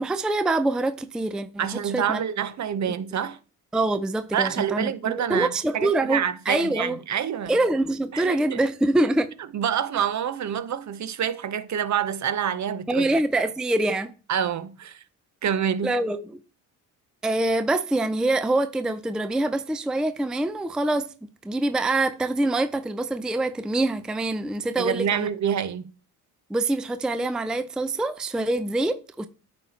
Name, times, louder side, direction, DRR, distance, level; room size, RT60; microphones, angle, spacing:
voice 1, 0.0-1.7 1.9-2.2 2.9-3.0 3.7-7.0 7.5-9.3 12.9-14.1 15.8-16.3 17.2-21.1 21.4-25.3 26.5-29.3, right 2 dB, ahead, 0.4 m, -25 dB
voice 2, 1.6-3.4 4.3-7.5 8.1-8.6 9.5-13.1 14.3-15.0 15.4-16.0 24.8-25.9, right 8 dB, 45° right, 0.7 m, -27 dB
9.0 x 4.1 x 4.2 m
supercardioid pair, 75°, 41 cm